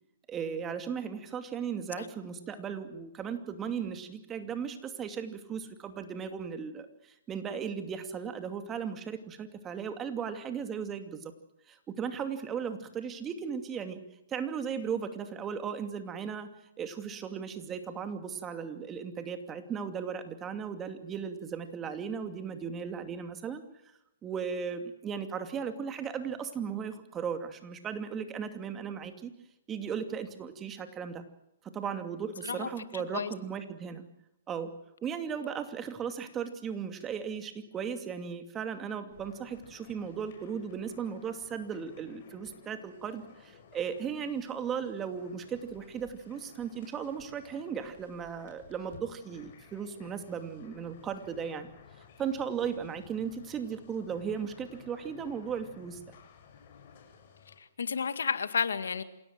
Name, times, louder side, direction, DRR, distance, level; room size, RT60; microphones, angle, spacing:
voice 1, 0.3-11.3 11.7-14.0 14.3-16.5 16.8-23.6 24.2-29.3 29.7-31.2 31.6-34.0 34.5-34.7 35.0-51.7 52.2-56.0, right 7 dB, 20° right, 8 dB, 2.6 m, -36 dB
voice 2, 32.4-33.3 57.6-59.0, left 6 dB, 80° left, 11 dB, 2.0 m, -32 dB
sound 1, 39.1-57.6, left 6 dB, 50° left, 6.8 m, -55 dB
27.5 x 17.5 x 7.7 m, 0.86 s
hypercardioid pair, 135°, 0 cm